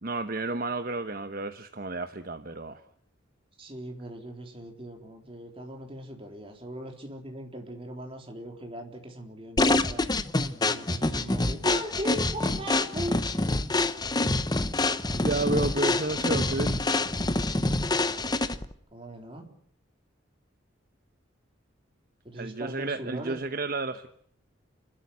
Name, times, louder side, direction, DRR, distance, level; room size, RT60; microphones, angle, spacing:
voice 1, 0.0-2.8 15.2-16.8 22.3-24.1, right 2 dB, 45° right, 9 dB, 1.0 m, -31 dB
voice 2, 3.6-10.1 10.7-13.2 15.3-15.6 18.9-19.5 22.2-23.4, right 1 dB, 30° right, 2 dB, 3.8 m, -39 dB
sound 1, 9.6-18.7, left 2 dB, 20° left, 0.9 m, -26 dB
29.5 x 13.0 x 9.5 m, 0.67 s
head